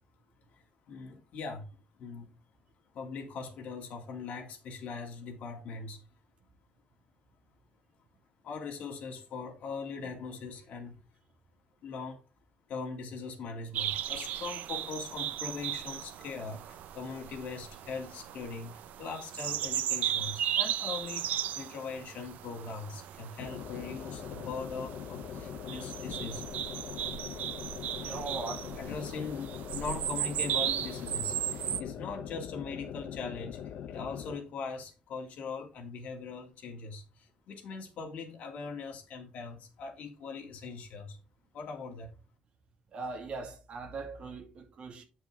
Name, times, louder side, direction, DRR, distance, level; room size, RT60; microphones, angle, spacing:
voice 1, 0.5-2.3 2.9-6.0 8.4-11.0 11.8-12.2 12.7-26.4 28.8-41.2 41.5-42.1, left 4 dB, 60° left, 2.7 m, -41 dB
sound 1, 13.7-31.8, right 11 dB, 85° right, 0.7 m, -36 dB
sound 2, 23.4-34.4, left 9 dB, 75° left, 1.0 m, -42 dB
voice 2, 27.9-28.6 42.9-45.0, right 3 dB, 45° right, 2.3 m, -40 dB
9.3 x 6.3 x 3.8 m
cardioid pair, 170°, 3 cm